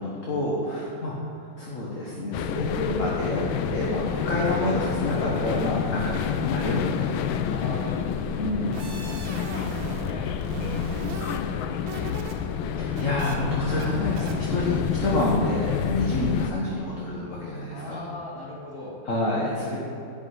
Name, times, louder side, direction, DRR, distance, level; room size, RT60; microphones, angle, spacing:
voice 1, 0.0-3.4 3.7-7.1 8.4-8.8 12.8-18.0 19.0-19.8, left 1 dB, 45° left, -5 dB, 1.6 m, -28 dB
sound 1, 2.3-16.5, left 8 dB, 85° left, 1.4 m, -28 dB
voice 2, 7.5-8.7 8.9-12.7 16.0-16.2 17.7-19.0, left 1 dB, 10° left, -5 dB, 2.2 m, -41 dB
sound 2, 8.5-10.1 10.4-12.3 12.6-13.4 13.8-13.9 14.2-14.3, right 3 dB, 75° right, 1.8 m, -36 dB
10.5 x 5.5 x 8.2 m, 2.8 s
omnidirectional pair, 2.2 m